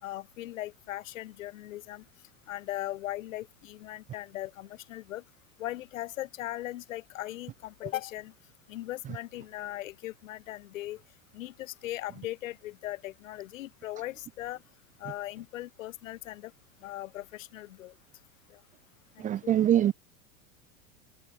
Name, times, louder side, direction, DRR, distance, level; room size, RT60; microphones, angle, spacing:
voice 1, 0.0-2.0 2.5-5.2 5.6-8.3 8.7-11.0 11.3-14.6 15.0-16.5 16.8-17.9 18.5-18.6 19.2-19.6, left 15 dB, 80° left, 5.0 m, -39 dB
voice 2, 19.2-19.9, right 11 dB, 20° right, 0.8 m, -23 dB
supercardioid pair, 150°, 39 cm